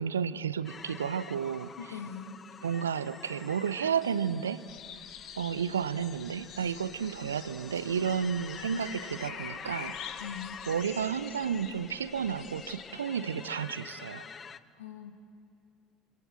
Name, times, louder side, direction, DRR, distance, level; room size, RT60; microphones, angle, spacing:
voice 1, 0.0-2.0 2.6-4.6 5.4-10.2 10.6-14.2, right 7 dB, 75° right, 16 dB, 0.7 m, -32 dB
sound 1, 0.6-14.6, left 6 dB, 30° left, 0.8 m, -47 dB
voice 2, 1.8-2.4 10.2-10.6 14.8-15.1, left 7 dB, 70° left, 6 dB, 1.8 m, -41 dB
sound 2, 4.7-12.9, left 9 dB, 50° left, 1.7 m, -47 dB
28.5 x 26.0 x 7.6 m, 2.4 s
figure-of-eight pair, 60°, 0 cm